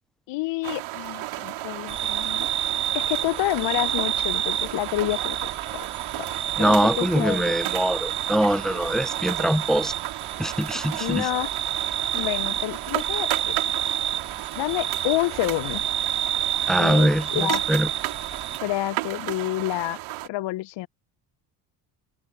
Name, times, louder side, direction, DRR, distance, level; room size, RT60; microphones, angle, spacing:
voice 1, 0.3-2.7 2.9-5.8 6.2-6.3 6.6-7.5 11.0-11.5 12.1-13.6 14.6-15.8 16.8-17.6 18.6-20.0 20.2-20.9, left 17 dB, 60° left, 0.7 m, -28 dB
sound 1, 0.6-20.3, right 17 dB, 70° right, 2.5 m, -34 dB
sound 2, 1.9-18.6, right 10 dB, 35° right, 1.0 m, -29 dB
voice 2, 6.6-9.9 10.4-11.3 16.7-17.9, equal, ahead, 0.4 m, -23 dB
hypercardioid pair, 60°, 50 cm